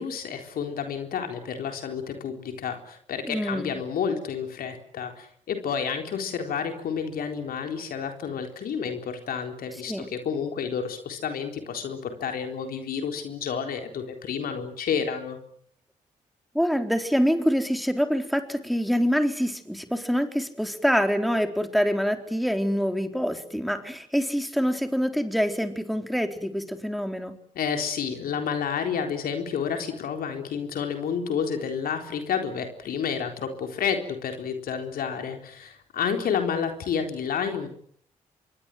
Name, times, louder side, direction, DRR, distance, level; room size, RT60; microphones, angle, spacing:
voice 1, 0.0-15.4 27.5-37.7, left 7 dB, 65° left, 5 dB, 4.0 m, -30 dB
voice 2, 3.3-3.8 9.9-10.1 16.5-27.4, equal, ahead, 6 dB, 4.0 m, -25 dB
26.5 x 22.5 x 7.8 m, 0.62 s
hypercardioid pair, 45°, 16 cm